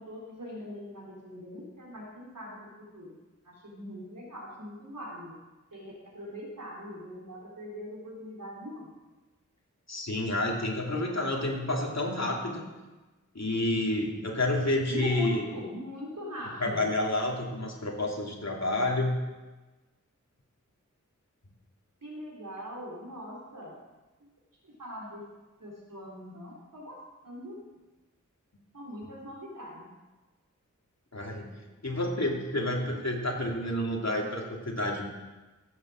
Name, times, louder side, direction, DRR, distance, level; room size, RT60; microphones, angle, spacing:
voice 1, 0.0-3.2 3.4-5.4 5.7-8.9 14.9-16.9 22.0-23.8 24.6-25.3 25.6-27.6 28.7-29.9, left 1 dB, 90° right, -4 dB, 3.7 m, -41 dB
voice 2, 9.9-12.6 13.3-15.5 16.6-19.2 31.1-31.5 31.8-35.1, left 1 dB, 55° left, -1 dB, 3.0 m, -29 dB
16.0 x 7.5 x 7.6 m, 1.2 s
wide cardioid pair, 55°, 31 cm